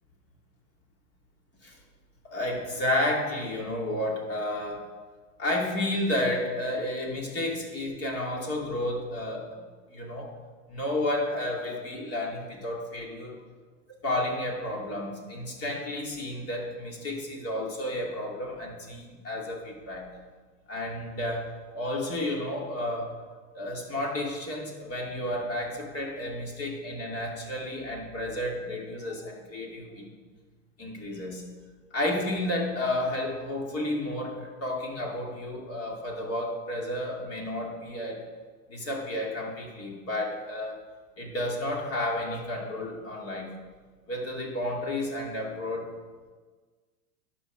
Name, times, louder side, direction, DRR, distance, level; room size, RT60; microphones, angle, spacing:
voice 1, 2.2-4.8 5.4-9.5 9.9-10.3 10.7-13.4 14.0-20.2 20.7-23.1 23.5-30.1 30.8-31.5 31.9-38.2 38.7-40.8 41.2-43.5 44.1-45.9, left 1 dB, 30° left, -1 dB, 2.6 m, -31 dB
11.5 x 5.9 x 6.0 m, 1.4 s
hypercardioid pair, 110°, 46 cm